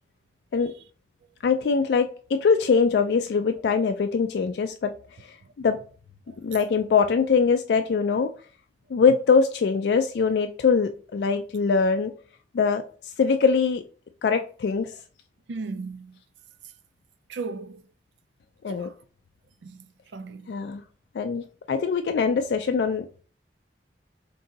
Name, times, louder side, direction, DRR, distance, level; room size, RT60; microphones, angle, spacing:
voice 1, 1.4-4.9 5.2-5.8 6.4-8.3 8.9-12.1 12.5-12.8 13.2-13.8 14.2-14.9 18.6-18.9 20.5-20.8 21.1-23.1, left 5 dB, 65° left, 0.3 m, -22 dB
voice 2, 15.5-16.2 17.3-17.8 18.7-19.0 19.6-19.9 20.1-20.5, right 4 dB, 80° right, 0.4 m, -36 dB
3.7 x 2.6 x 4.0 m
head